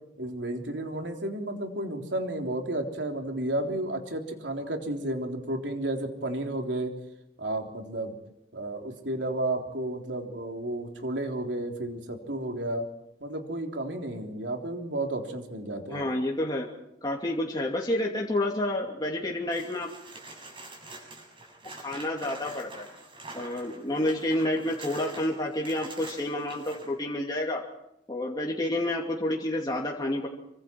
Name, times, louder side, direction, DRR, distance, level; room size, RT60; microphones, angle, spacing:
voice 1, 0.2-6.9 7.4-8.2 8.5-12.9 13.2-16.1, right 1 dB, 75° right, 3 dB, 3.6 m, -32 dB
voice 2, 15.9-16.7 17.0-19.9 21.8-22.9 23.3-27.6 28.1-30.3, left 1 dB, 25° left, -1 dB, 2.6 m, -29 dB
sound 1, 19.5-26.9 29.5-29.6, right 2 dB, 30° right, 6.8 m, -45 dB
27.0 x 24.5 x 4.7 m, 0.81 s
head